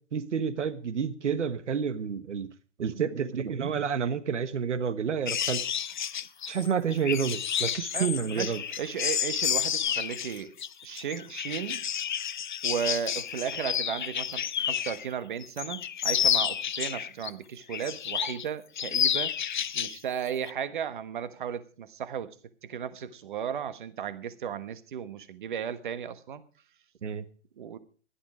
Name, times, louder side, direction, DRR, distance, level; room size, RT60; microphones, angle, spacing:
voice 1, 0.1-2.5 2.8-5.6 6.5-8.6 27.0-27.2, right 7 dB, 85° right, 1.5 m, -29 dB
sound 1, 5.3-15.1 15.4-17.3 17.7-18.5 18.8-20.0 20.3-20.5, left 9 dB, 40° left, 0.6 m, -30 dB
voice 2, 7.9-10.5 10.8-11.8 12.6-19.3 19.7-22.3 22.6-26.4 27.6-27.8, right 8 dB, 45° right, 1.3 m, -35 dB
14.5 x 11.5 x 4.9 m
hypercardioid pair, 170°, 35 cm